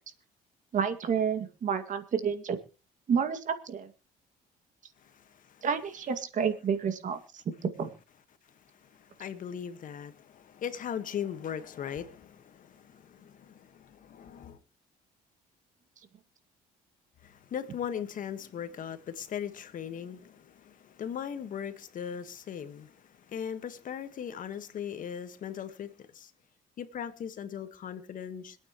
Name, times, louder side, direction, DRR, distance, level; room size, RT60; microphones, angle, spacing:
voice 1, 0.7-2.6 3.1-3.9 5.6-7.9, right 7 dB, 50° right, 2.1 m, -30 dB
voice 2, 5.0-5.6 8.8-14.6 17.2-26.3 26.8-28.6, left 8 dB, 50° left, 1.5 m, -39 dB
26.0 x 9.1 x 3.0 m
cardioid pair, 110°, 17 cm